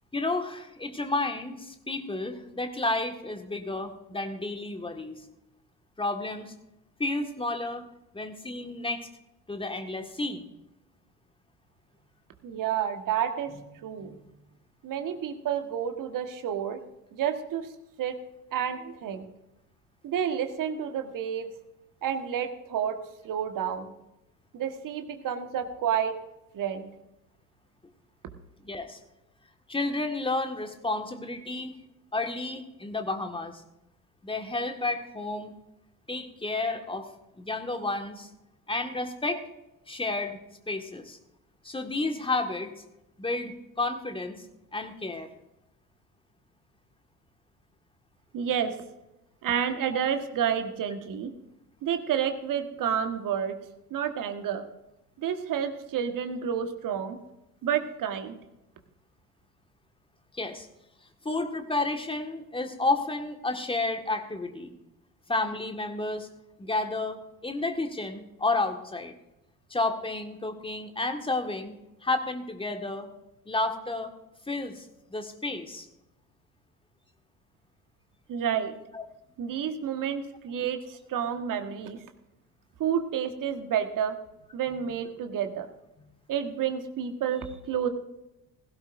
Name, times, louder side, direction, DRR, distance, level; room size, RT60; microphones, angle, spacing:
voice 1, 0.1-5.2 6.0-6.5 7.0-7.8 8.1-9.1 9.5-10.4 14.0-14.3 28.6-29.0 29.7-31.8 32.1-33.6 34.2-35.5 36.1-37.1 37.4-38.3 38.7-39.4 39.9-40.4 40.7-41.2 41.6-42.7 43.2-44.5 44.7-45.3 60.3-60.7 61.2-64.7 65.3-66.3 66.6-69.1 69.7-71.7 72.0-73.1 73.5-74.1 74.5-75.9 78.9-79.0, left 2 dB, 10° left, 6 dB, 1.7 m, -31 dB
voice 2, 12.4-13.5 13.8-14.2 14.8-16.8 17.1-17.7 18.0-18.2 18.5-19.3 20.0-21.5 22.0-23.0 23.2-23.9 24.5-26.1 26.5-26.9 48.3-48.7 49.4-51.3 51.8-53.6 53.9-54.7 55.2-57.2 57.6-58.4 78.3-78.7 79.4-82.0 82.8-84.2 84.5-85.7 86.3-87.9, right 8 dB, 40° right, 7 dB, 1.6 m, -30 dB
17.0 x 16.0 x 2.6 m, 0.91 s
figure-of-eight pair, 55°, 47 cm